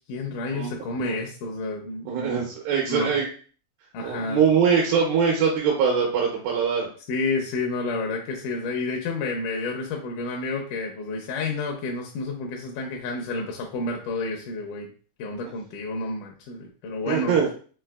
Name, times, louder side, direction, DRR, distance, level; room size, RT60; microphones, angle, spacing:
voice 1, 0.1-2.5 2.9-3.2 3.9-4.4 7.1-14.9 15.2-17.3, left 3 dB, 80° left, 1 dB, 1.9 m, -30 dB
voice 2, 2.1-3.3 4.0-6.9 17.1-17.5, right 6 dB, 85° right, -2 dB, 2.4 m, -22 dB
5.7 x 2.6 x 2.2 m, 0.41 s
omnidirectional pair, 4.1 m